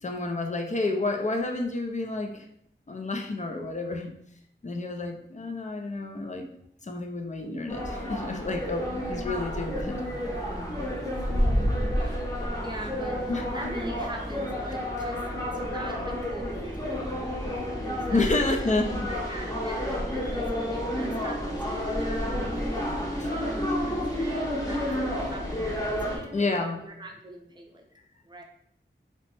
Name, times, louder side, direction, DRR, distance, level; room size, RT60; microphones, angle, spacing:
voice 1, 0.0-2.5 2.9-4.1 4.6-6.5 6.8-9.9 13.3-13.5 18.1-19.1 23.2-23.3 26.3-26.8, left 2 dB, 35° left, 3 dB, 0.4 m, -29 dB
sound 1, 7.7-26.2, equal, 20° left, 0.8 m, -30 dB
voice 2, 11.3-12.1 12.6-15.3 15.5-18.7 19.1-27.8 28.2-28.4, right 1 dB, 20° right, 1 dB, 0.6 m, -42 dB
2.9 x 2.1 x 3.1 m, 0.71 s
wide cardioid pair, 45°, 20 cm